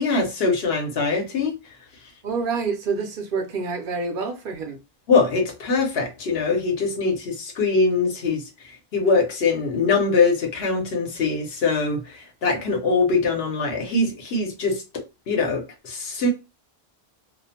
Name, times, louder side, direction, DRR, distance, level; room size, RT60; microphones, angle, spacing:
voice 1, 0.0-1.5 5.1-16.3, left 4 dB, 75° left, 1.0 m, -23 dB
voice 2, 2.2-4.8, right 4 dB, 60° right, 0.7 m, -27 dB
2.4 x 2.0 x 2.8 m
omnidirectional pair, 1.0 m